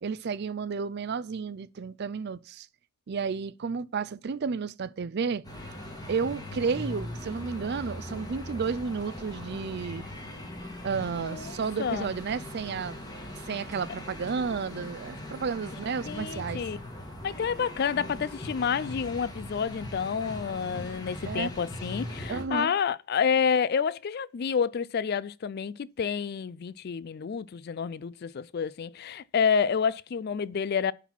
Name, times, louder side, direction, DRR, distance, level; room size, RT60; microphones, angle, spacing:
voice 1, 0.0-2.7 3.1-5.4 6.1-10.0 10.8-13.0 13.3-16.6 21.2-21.5 22.3-22.7, right 5 dB, 50° right, 0.4 m, -32 dB
sound 1, 5.4-22.4, left 1 dB, 20° left, 1.8 m, -40 dB
voice 2, 11.1-12.1 16.1-16.8 17.2-30.9, left 6 dB, 50° left, 0.4 m, -29 dB
11.5 x 4.1 x 5.9 m
head